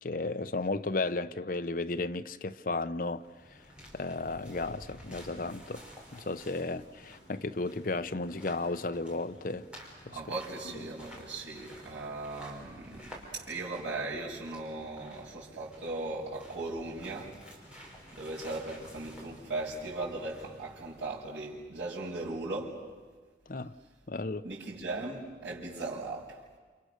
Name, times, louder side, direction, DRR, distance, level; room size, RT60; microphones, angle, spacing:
voice 1, 0.0-3.6 3.9-5.8 6.1-9.7 10.1-10.2 10.6-10.8 23.5-23.7 24.1-24.4, left 3 dB, 50° left, 0.8 m, -34 dB
sound 1, 3.0-21.3, equal, 5° right, 5.3 m, -52 dB
voice 2, 10.1-17.4 18.1-22.8 24.4-26.4, right 2 dB, 90° right, 6.2 m, -38 dB
29.0 x 28.5 x 6.7 m
head